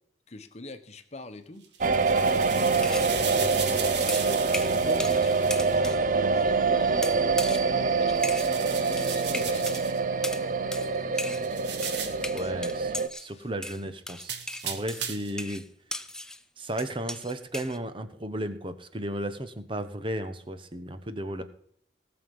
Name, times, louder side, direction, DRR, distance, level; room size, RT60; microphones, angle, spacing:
voice 1, 0.3-1.7 2.0-2.4 3.2-4.4 4.7-6.0 6.3-7.5 8.0-12.7 13.2-13.5 15.4-15.6 21.4-21.5, left 2 dB, 40° left, 1.2 m, -45 dB
sound 1, 1.6-5.8 8.2-10.0 11.4-12.3 14.2-15.4, right 8 dB, 70° right, 1.4 m, -36 dB
sound 2, 1.8-13.1, right 4 dB, 45° right, 0.6 m, -25 dB
sound 3, 2.8-3.1 4.1-5.2 5.5-6.0 7.0-7.7 8.2-8.5 9.0-9.8 10.2-10.4 10.7-10.9 11.2-11.5 11.8-13.3 13.6-16.4 16.8-17.8, left 1 dB, 5° left, 0.5 m, -37 dB
voice 2, 12.3-14.4 14.6-15.6 16.6-21.4, right 1 dB, 30° right, 1.1 m, -34 dB
18.5 x 7.1 x 5.5 m
head